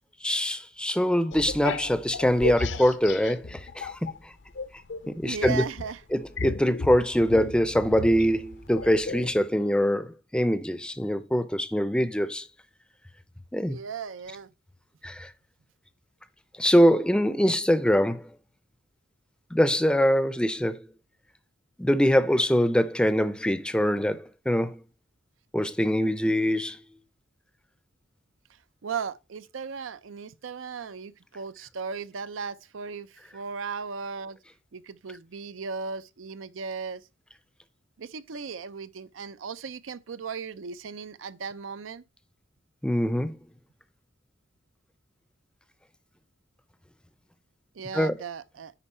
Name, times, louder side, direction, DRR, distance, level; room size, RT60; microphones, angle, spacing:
voice 1, 0.2-4.0 4.2-4.3 5.1-5.6 6.1-12.5 13.5-13.8 15.0-15.3 16.6-18.3 19.5-20.9 21.8-24.8 25.5-26.8 42.8-43.3 47.9-48.1, equal, 5° left, 0.5 m, -23 dB
sound 1, 1.3-4.2 4.5-9.3, left 4 dB, 65° left, 0.6 m, -34 dB
voice 2, 5.2-6.0 13.7-14.5 28.8-34.4 34.7-37.0 38.0-42.0 47.7-48.7, right 5 dB, 90° right, 0.5 m, -36 dB
10.0 x 4.5 x 4.3 m
head